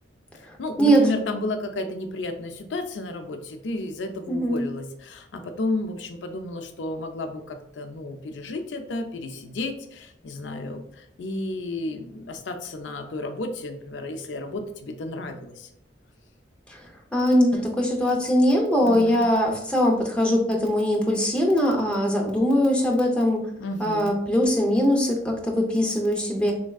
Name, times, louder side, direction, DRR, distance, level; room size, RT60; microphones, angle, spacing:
voice 1, 0.3-15.7 18.8-19.3 23.6-24.1, left 2 dB, 75° left, 6 dB, 0.4 m, -32 dB
voice 2, 4.3-4.6 16.7-16.8 17.1-23.4 23.8-26.5, equal, 5° left, 0 dB, 0.5 m, -21 dB
3.5 x 3.2 x 2.3 m, 0.72 s
head